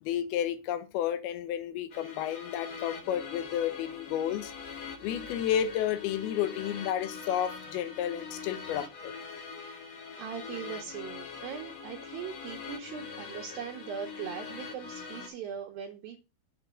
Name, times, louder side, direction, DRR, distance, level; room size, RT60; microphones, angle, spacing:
voice 1, 0.0-4.5 5.0-9.1, left 10 dB, 80° left, 2.3 m, -31 dB
sound 1, 1.9-15.3, left 5 dB, 60° left, 1.8 m, -43 dB
voice 2, 10.2-16.2, right 8 dB, 75° right, 2.2 m, -40 dB
7.8 x 3.8 x 6.2 m
omnidirectional pair, 5.0 m